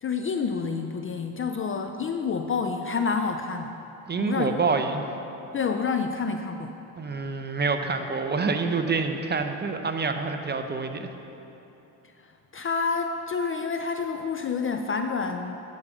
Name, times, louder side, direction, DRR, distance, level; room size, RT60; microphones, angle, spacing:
voice 1, 0.0-3.7 4.2-4.6 5.5-6.7 12.5-15.6, left 5 dB, 30° left, 6 dB, 0.4 m, -28 dB
voice 2, 4.1-5.0 7.0-11.1, right 4 dB, 20° right, 7 dB, 0.6 m, -27 dB
10.5 x 6.4 x 4.9 m, 3.0 s
supercardioid pair, 75°, 47 cm